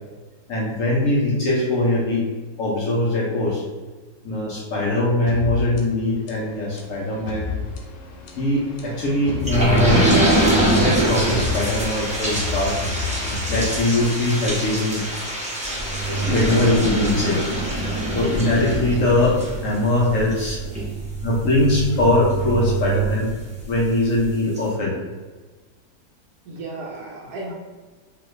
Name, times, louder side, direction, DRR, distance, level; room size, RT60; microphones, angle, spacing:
voice 1, 0.5-2.2 2.6-3.6 4.2-7.5 8.4-10.1 10.7-12.9 13.5-15.0 16.1-17.5 18.1-20.6 21.2-23.3 23.7-25.0, left 1 dB, 60° left, -4 dB, 0.9 m, -21 dB
sound 1, 5.3-14.2, left 4 dB, 90° left, 1.3 m, -32 dB
sound 2, 9.5-23.8 24.2-24.3 24.6-24.7, right 1 dB, 5° right, 0.5 m, -24 dB
voice 2, 26.4-27.5, right 2 dB, 70° right, -5 dB, 1.1 m, -34 dB
3.0 x 2.5 x 3.1 m, 1.3 s
omnidirectional pair, 1.9 m